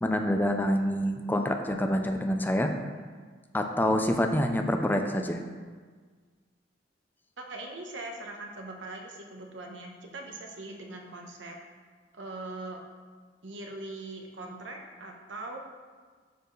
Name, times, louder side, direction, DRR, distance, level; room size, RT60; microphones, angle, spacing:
voice 1, 0.0-2.7 3.5-5.4, left 1 dB, 10° left, 5 dB, 0.4 m, -26 dB
voice 2, 7.5-11.6 12.1-12.8 13.4-15.6, right 2 dB, 85° right, 2 dB, 0.9 m, -41 dB
10.0 x 4.5 x 3.1 m, 1.5 s
head